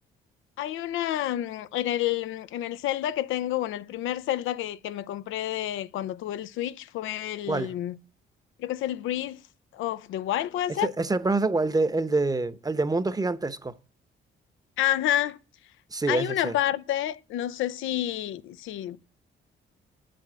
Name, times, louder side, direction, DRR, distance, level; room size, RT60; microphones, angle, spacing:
voice 1, 0.6-7.9 8.6-9.4 9.7-10.9 14.8-15.4 16.1-19.0, left 13 dB, 85° left, 0.6 m, -29 dB
voice 2, 7.5-7.8 10.8-13.7 15.9-16.5, right 3 dB, 20° right, 0.9 m, -26 dB
9.0 x 7.8 x 7.5 m
cardioid pair, 90°, 20 cm